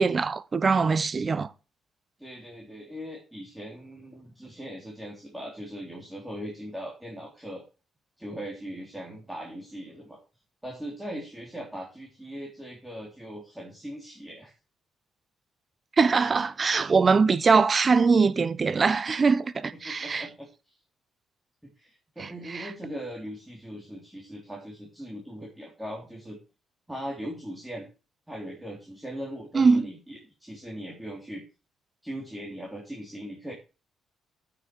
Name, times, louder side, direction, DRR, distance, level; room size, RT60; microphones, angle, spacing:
voice 1, 0.0-1.5 16.0-20.3 22.2-22.7 29.5-29.9, right 4 dB, 35° right, 0.8 m, -22 dB
voice 2, 2.2-7.6 8.2-10.2 10.6-14.5 19.8-20.8 21.8-26.4 26.9-27.9 28.3-31.4 32.0-33.5, equal, 5° right, 3.4 m, -39 dB
8.9 x 6.8 x 4.7 m
cardioid pair, 90°, 0 cm